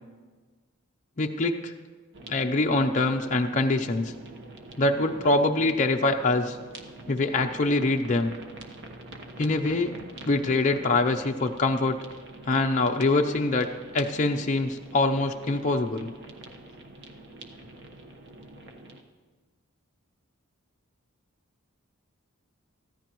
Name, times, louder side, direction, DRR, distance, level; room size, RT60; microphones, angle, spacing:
voice 1, 1.2-1.7 2.3-4.1 4.8-6.6 7.1-8.3 9.4-9.9 10.3-12.0 12.5-16.1, left 2 dB, 35° left, 2 dB, 0.6 m, -24 dB
sound 1, 2.1-19.0, right 2 dB, 55° right, 1.2 m, -45 dB
24.0 x 14.5 x 3.0 m, 1.4 s
head